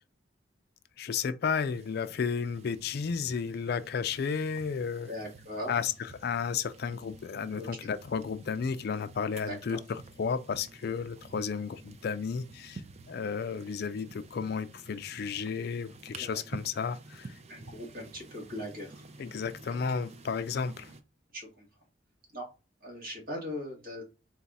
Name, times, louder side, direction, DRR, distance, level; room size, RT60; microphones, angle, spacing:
voice 1, 1.0-5.1 5.7-12.8 13.1-17.3 19.2-20.9, left 6 dB, 55° left, 0.4 m, -33 dB
sound 1, 1.6-21.0, right 3 dB, 35° right, 0.5 m, -50 dB
voice 2, 5.1-5.7 7.5-7.7 9.5-9.8 16.1-16.4 17.5-18.9 19.7-19.8 21.3-21.7 22.3-22.5 22.8-24.1, left 1 dB, 50° right, 1.7 m, -39 dB
4.0 x 2.4 x 4.0 m
head